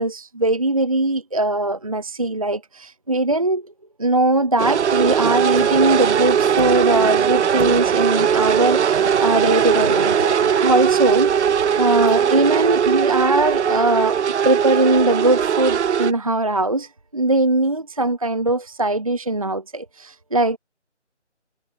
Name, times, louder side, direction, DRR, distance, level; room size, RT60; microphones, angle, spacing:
voice 1, 0.0-3.7 4.0-11.3 11.8-14.2 14.4-20.6, right 2 dB, 30° right, 0.8 m, -20 dB
sound 1, 4.6-4.9 5.6-6.0 6.6-7.1 7.6-8.1 9.5-9.6, left 4 dB, 40° left, 4.9 m, -36 dB
sound 2, 4.6-16.1, right 8 dB, 70° right, 0.5 m, -19 dB
figure-of-eight pair, 170°, 36 cm